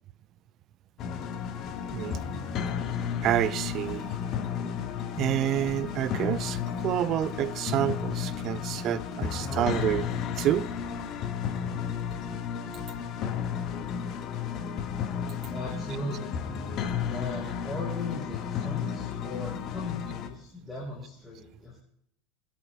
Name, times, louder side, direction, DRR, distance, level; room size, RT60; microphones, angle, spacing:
sound 1, 1.0-20.3, left 7 dB, 40° left, 1.5 m, -33 dB
voice 1, 3.2-4.1 5.2-6.6 6.8-10.1 10.4-10.7, right 12 dB, 40° right, 0.5 m, -28 dB
voice 2, 15.5-16.4 17.0-21.8, left 2 dB, 5° left, 6.2 m, -38 dB
24.5 x 13.0 x 2.3 m
figure-of-eight pair, 75°, 0 cm